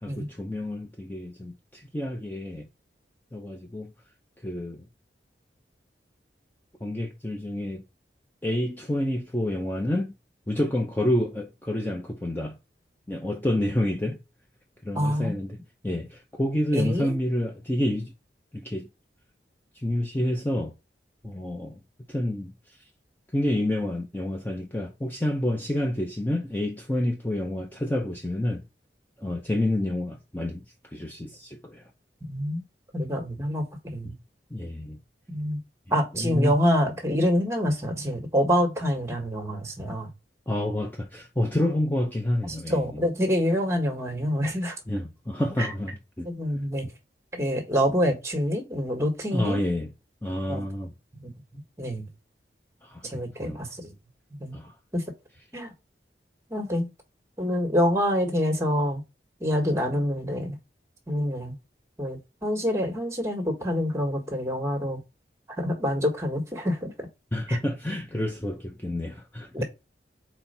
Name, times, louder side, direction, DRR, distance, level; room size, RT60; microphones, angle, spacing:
voice 1, 0.0-2.7 3.3-3.9 4.4-4.8 6.8-7.8 8.4-10.1 10.5-12.6 13.1-14.2 14.8-15.6 15.8-18.1 18.5-18.9 19.7-20.7 21.2-21.8 22.1-22.5 23.3-28.6 29.2-30.6 30.9-31.8 34.0-34.1 34.5-35.0 36.2-36.5 40.5-43.1 44.9-46.3 49.3-49.9 50.2-50.9 52.8-53.6 54.5-54.7 67.3-69.6, left 1 dB, 10° left, 0.6 m, -28 dB
voice 2, 14.9-15.4 16.7-17.1 32.3-32.6 32.9-34.1 35.3-35.6 35.9-40.1 42.4-44.8 45.6-45.7 46.2-46.9 47.3-49.6 50.5-50.6 51.1-52.1 53.0-53.9 54.4-54.5 54.9-55.0 55.5-55.7 56.5-56.9 57.4-59.0 59.4-60.5 61.1-61.5 62.0-65.0 65.6-66.9 67.5-67.6 69.5-69.6, equal, 15° right, 1.5 m, -26 dB
4.4 x 4.3 x 5.5 m
head